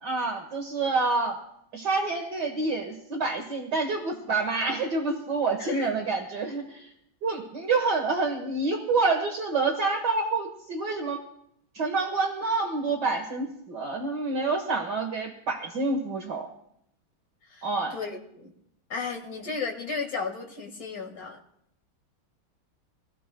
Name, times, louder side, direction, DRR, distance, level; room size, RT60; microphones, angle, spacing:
voice 1, 0.0-1.4 1.7-6.9 7.2-11.2 11.7-16.5 17.6-18.0, right 3 dB, 55° right, 3 dB, 1.9 m, -27 dB
voice 2, 5.6-5.9 17.5-17.7 17.9-18.5 18.9-21.4, left 4 dB, 45° left, 2 dB, 2.4 m, -34 dB
24.5 x 17.5 x 2.3 m, 0.73 s
omnidirectional pair, 2.3 m